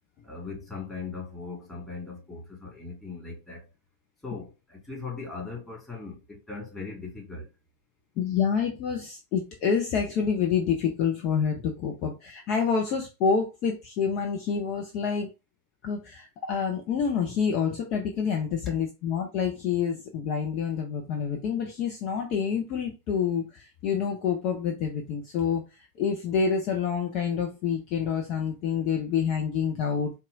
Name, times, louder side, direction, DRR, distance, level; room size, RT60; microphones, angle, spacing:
voice 1, 0.2-3.7 4.2-7.5, left 4 dB, 10° left, 2.1 m, -39 dB
voice 2, 8.2-15.3 15.8-30.1, left 6 dB, 40° left, 0.6 m, -27 dB
4.1 x 2.3 x 2.6 m
figure-of-eight pair, 90°, 0 cm